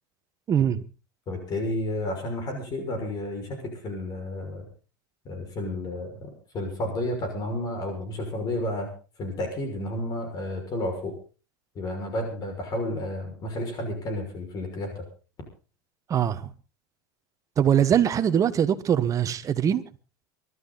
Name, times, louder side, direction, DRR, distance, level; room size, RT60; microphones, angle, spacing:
voice 1, 0.5-0.8 16.1-16.5 17.6-19.8, right 9 dB, 30° right, 1.5 m, -22 dB
voice 2, 1.3-4.7 5.2-8.9 9.2-11.1 11.7-15.0, left 1 dB, 40° left, 6.1 m, -31 dB
23.5 x 12.5 x 4.1 m
supercardioid pair, 105°, 11 cm